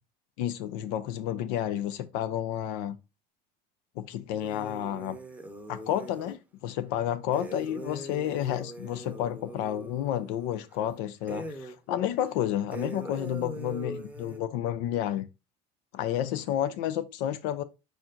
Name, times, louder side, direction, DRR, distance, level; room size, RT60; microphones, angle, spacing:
voice 1, 0.4-3.0 4.0-5.2 5.7-15.3 15.9-17.6, left 11 dB, 75° left, 0.6 m, -31 dB
sound 1, 4.4-6.4 7.3-10.9 11.3-11.8 12.2-12.3 12.7-14.4, right 2 dB, 5° right, 0.8 m, -41 dB
4.6 x 4.2 x 2.5 m
supercardioid pair, 90°, 20 cm